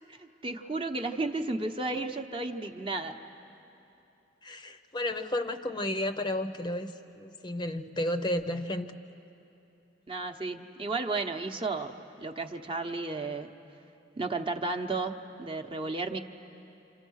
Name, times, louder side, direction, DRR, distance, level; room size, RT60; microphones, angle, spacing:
voice 1, 0.2-3.2 10.1-13.5 14.2-16.2, right 3 dB, 30° right, 4 dB, 0.9 m, -33 dB
voice 2, 4.4-9.0, left 1 dB, 25° left, 8 dB, 0.6 m, -32 dB
28.5 x 27.5 x 6.4 m, 2.9 s
head